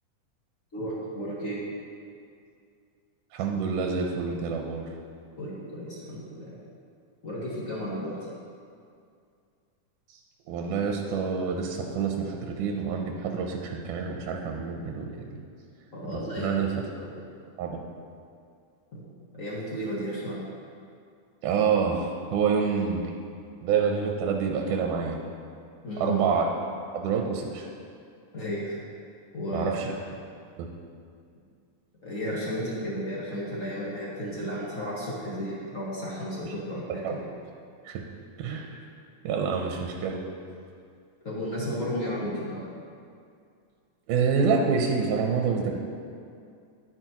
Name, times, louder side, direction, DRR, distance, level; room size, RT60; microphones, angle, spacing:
voice 1, 0.7-1.6 5.4-6.5 7.2-8.2 15.9-16.6 17.0-17.1 18.9-19.0 19.3-20.4 25.8-26.2 28.3-28.8 29.3-30.0 32.0-37.2 41.2-42.7, equal, 35° left, -7 dB, 1.3 m, -33 dB
voice 2, 3.3-4.9 10.1-10.2 10.5-15.2 16.1-16.9 17.6-17.8 21.4-23.1 23.6-25.2 26.0-26.5 26.9-27.7 29.5-29.9 30.6-30.7 37.0-37.1 37.9-38.0 38.4-38.8 39.2-40.2 44.1-45.8, right 6 dB, 90° right, 1 dB, 2.2 m, -27 dB
10.5 x 9.1 x 3.0 m, 2.3 s
omnidirectional pair, 3.7 m